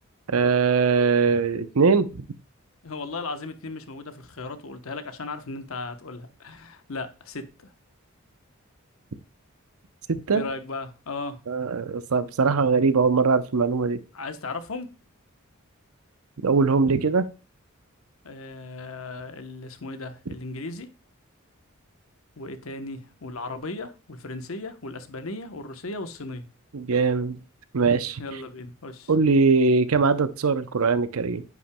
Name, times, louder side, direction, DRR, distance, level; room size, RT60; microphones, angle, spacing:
voice 1, 0.3-2.3 10.1-10.4 11.5-14.0 16.4-17.2 26.7-27.4 27.7-28.2 29.1-31.4, right 4 dB, 85° right, 0.7 m, -21 dB
voice 2, 2.8-7.7 10.3-11.4 14.1-14.9 18.2-20.9 22.4-26.5 28.2-29.1, left 3 dB, 70° left, 1.0 m, -36 dB
9.5 x 5.8 x 2.2 m
head